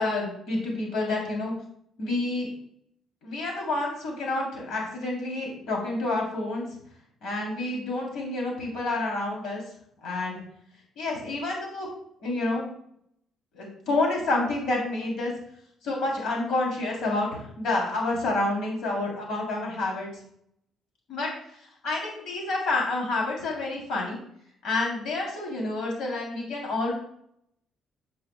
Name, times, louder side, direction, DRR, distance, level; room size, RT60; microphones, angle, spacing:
voice 1, 0.0-1.5 2.0-2.5 3.2-6.6 7.2-9.6 10.0-10.4 11.0-11.9 12.2-12.6 13.5-15.3 15.8-20.1 21.1-24.2 24.6-27.0, left 2 dB, 65° left, -1 dB, 3.2 m, -29 dB
13.0 x 7.7 x 2.3 m, 0.69 s
cardioid pair, 160°, 0 cm